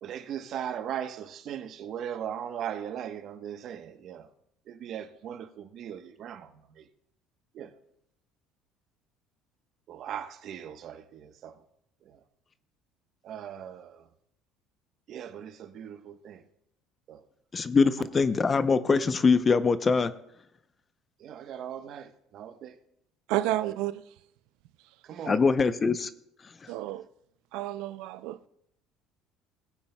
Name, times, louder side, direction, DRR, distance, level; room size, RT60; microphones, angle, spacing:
voice 1, 0.0-4.3 4.7-6.9 7.5-7.7 9.9-11.6 12.1-12.2 13.2-14.0 15.1-16.4 17.1-17.2 21.2-22.8 23.6-23.8 25.0-25.4, right 9 dB, 55° right, 1.0 m, -39 dB
voice 2, 17.5-20.1 25.3-26.1, left 4 dB, 30° left, 0.6 m, -23 dB
voice 3, 23.3-24.0 26.7-27.0 27.5-28.5, right 15 dB, 80° right, 0.3 m, -30 dB
20.0 x 8.8 x 2.2 m
supercardioid pair, 100°, 0 cm